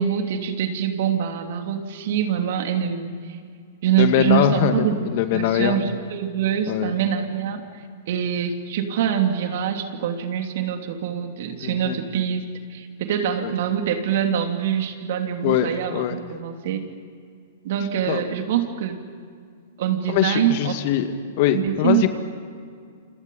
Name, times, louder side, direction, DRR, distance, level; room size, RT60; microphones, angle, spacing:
voice 1, 0.0-3.1 3.8-5.1 5.3-12.4 12.7-16.8 17.6-19.0 19.8-20.7 21.5-22.1, right 9 dB, 60° right, 5 dB, 3.0 m, -24 dB
voice 2, 4.0-5.8 6.7-6.9 11.6-12.0 13.4-13.5 15.4-16.2 18.1-18.2 20.1-21.1 21.4-22.1, left 11 dB, 50° left, 8 dB, 2.1 m, -22 dB
29.0 x 27.5 x 5.5 m, 2.1 s
hypercardioid pair, 110°, 0 cm